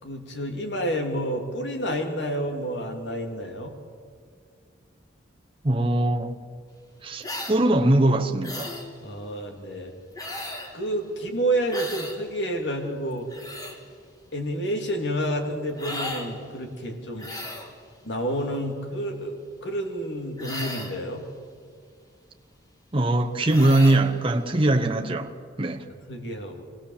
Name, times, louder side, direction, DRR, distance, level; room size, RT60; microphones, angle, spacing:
voice 1, 0.0-3.7 9.0-9.9 10.7-13.3 14.3-17.3 18.0-21.2 26.1-26.6, right 1 dB, 60° left, 2.8 m, -29 dB
voice 2, 5.6-6.4 7.0-8.7 22.9-25.3 25.6-25.9, right 1 dB, 30° right, 1.0 m, -21 dB
sound 1, 7.2-7.6 8.4-8.9 10.2-10.7 11.7-12.2 13.1-13.8 15.8-16.3 17.2-17.7 20.4-21.0 23.4-24.0, left 1 dB, 20° left, 2.1 m, -35 dB
24.0 x 18.0 x 7.3 m
head